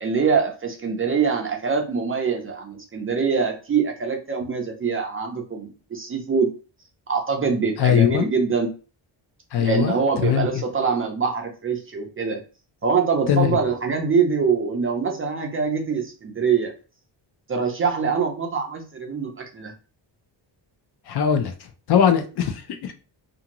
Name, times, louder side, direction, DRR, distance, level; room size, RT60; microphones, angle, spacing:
voice 1, 0.0-6.5 7.1-8.7 9.6-12.4 12.8-16.7 17.5-19.7, right 5 dB, 30° right, 0.3 m, -24 dB
voice 2, 7.8-8.3 9.5-10.0 10.2-10.5 13.3-13.6 21.1-21.5 21.9-22.9, left 8 dB, 60° left, 0.5 m, -20 dB
2.6 x 2.4 x 2.9 m
wide cardioid pair, 165°, 46 cm